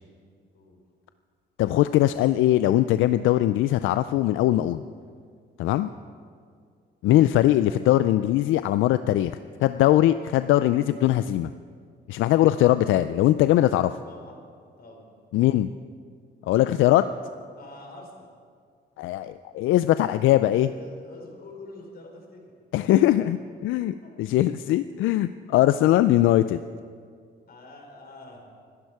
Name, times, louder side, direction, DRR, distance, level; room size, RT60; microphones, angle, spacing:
voice 1, 1.6-4.8 5.6-5.9 7.0-11.5 12.1-14.0 15.3-15.7 16.5-17.0 19.0-20.7 22.7-23.4 23.6-26.6, left 14 dB, 85° left, 12 dB, 0.4 m, -21 dB
voice 2, 13.8-14.4 14.8-15.1 15.3-15.6 16.7-17.1 17.6-18.3 20.7-23.4 23.8-24.2 27.5-28.5, left 2 dB, 50° left, 1 dB, 4.5 m, -46 dB
24.5 x 11.0 x 4.8 m, 2.1 s
cardioid pair, 90°, 20 cm